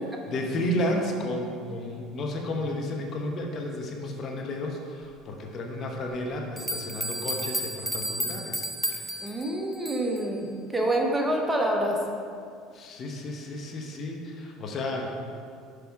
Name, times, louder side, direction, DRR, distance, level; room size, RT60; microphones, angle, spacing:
voice 1, 0.3-8.6 8.9-9.1 12.7-15.1, left 1 dB, 45° left, 2 dB, 0.9 m, -32 dB
sound 1, 6.6-10.3, equal, 10° left, 0.7 m, -32 dB
voice 2, 9.2-12.0, right 1 dB, 10° right, 0 dB, 1.0 m, -27 dB
6.1 x 4.9 x 4.7 m, 2.3 s
hypercardioid pair, 85°, 0 cm